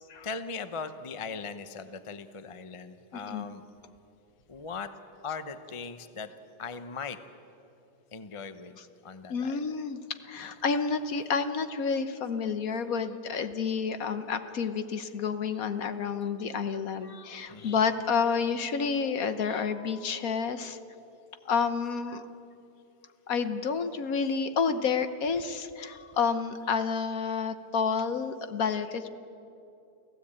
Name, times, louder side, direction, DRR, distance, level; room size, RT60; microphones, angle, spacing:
voice 1, 0.2-3.6 4.5-4.9 5.2-6.3 6.6-7.2 8.1-8.8 9.0-9.6 10.4-10.5 17.5-17.8, left 5 dB, 30° left, 10 dB, 0.6 m, -39 dB
voice 2, 3.1-3.5 8.8-8.9 9.3-20.8 21.4-22.2 23.3-29.1, left 5 dB, 60° left, 10 dB, 1.3 m, -30 dB
29.5 x 15.5 x 8.8 m, 2.7 s
omnidirectional pair, 1.9 m